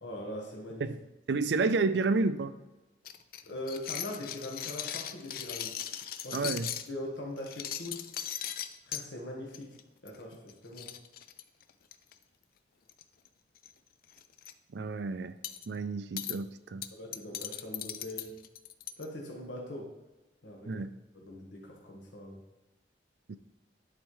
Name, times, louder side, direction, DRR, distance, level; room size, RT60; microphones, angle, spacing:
voice 1, 0.0-0.9 3.4-5.8 6.2-6.5 6.9-8.1 8.8-9.8 10.0-11.0 16.9-18.4 19.0-20.0 20.4-20.8 21.1-22.4, left 1 dB, 85° left, 1.4 m, -41 dB
voice 2, 1.3-2.5 6.3-6.7 14.7-15.4 15.7-16.8 20.7-20.9 23.3-23.4, right 3 dB, 70° right, 0.4 m, -30 dB
sound 1, 3.1-6.9 7.4-9.0 9.5-9.8 10.1-10.2 10.5-10.6 10.8-12.1 12.9-13.3 13.6-13.7 14.1-14.5 15.4-15.7 16.2-16.4 16.8-19.0, left 10 dB, 50° left, 0.4 m, -38 dB
10.5 x 4.2 x 3.2 m
head